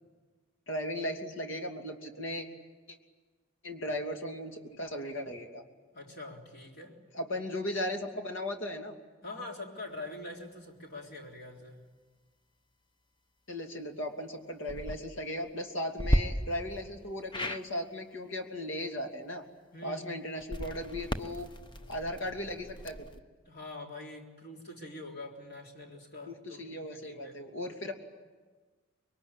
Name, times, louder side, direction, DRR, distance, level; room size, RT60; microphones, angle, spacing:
voice 1, 0.7-2.5 3.6-5.6 7.1-8.9 13.5-19.5 19.8-21.5 21.9-23.1 26.3-27.9, left 1 dB, 65° left, 4 dB, 2.8 m, -37 dB
voice 2, 5.9-7.0 9.2-11.8 19.7-20.0 23.5-27.4, left 2 dB, 50° left, 1 dB, 3.8 m, -44 dB
sound 1, 14.6-15.0 16.0-16.2 17.3-17.6 20.4-23.2, equal, 20° left, 0.9 m, -33 dB
26.0 x 22.5 x 9.9 m, 1.4 s
head